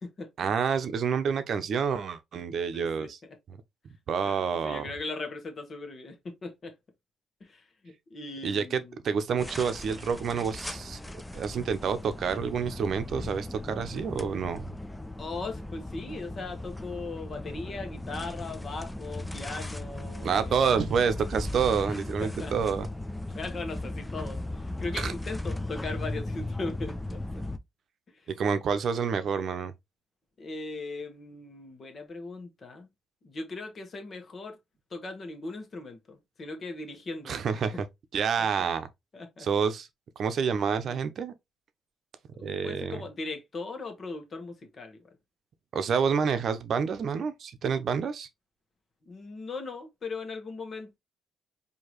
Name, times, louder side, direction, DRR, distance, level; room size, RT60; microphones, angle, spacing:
voice 1, 0.4-3.2 3.5-3.6 4.1-4.9 8.4-11.0 11.3-14.7 20.2-22.9 25.0-25.1 28.4-29.7 37.3-37.9 38.1-38.9 39.4-39.9 40.2-41.3 42.4-43.0 45.7-48.3, right 6 dB, 60° right, 0.7 m, -28 dB
voice 2, 2.7-3.3 4.2-6.7 7.4-9.0 15.2-20.7 21.9-22.5 23.3-27.2 28.1-28.3 30.4-32.9 33.2-34.6 34.9-37.6 38.4-38.5 39.1-39.5 42.4-45.1 49.0-51.0, left 3 dB, 45° left, 1.3 m, -39 dB
sound 1, 9.4-27.6, left 1 dB, 10° left, 0.4 m, -37 dB
4.6 x 2.8 x 3.0 m
cardioid pair, 90°, 0 cm